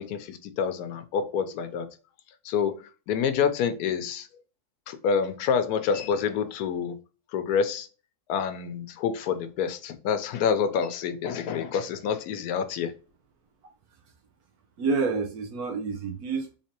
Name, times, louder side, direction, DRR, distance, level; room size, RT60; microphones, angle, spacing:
voice 1, 0.0-1.9 2.4-4.3 4.9-7.0 7.3-7.9 8.3-12.9, left 7 dB, 80° left, 1.1 m, -27 dB
voice 2, 14.8-16.6, right 4 dB, 75° right, 1.2 m, -28 dB
3.6 x 3.2 x 2.9 m
omnidirectional pair, 1.6 m